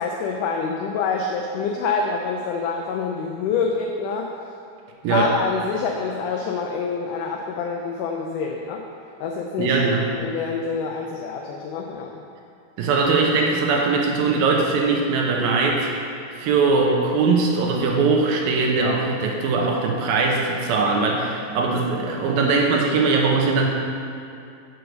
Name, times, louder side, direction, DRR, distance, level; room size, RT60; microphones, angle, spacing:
voice 1, 0.0-4.3 5.1-8.8 9.2-9.8 10.2-12.2, left 5 dB, 90° left, 1 dB, 1.8 m, -26 dB
voice 2, 9.6-10.1 12.8-15.9 16.4-23.7, right 4 dB, 80° right, 0 dB, 2.5 m, -20 dB
6.6 x 4.6 x 6.3 m, 2.5 s
omnidirectional pair, 4.3 m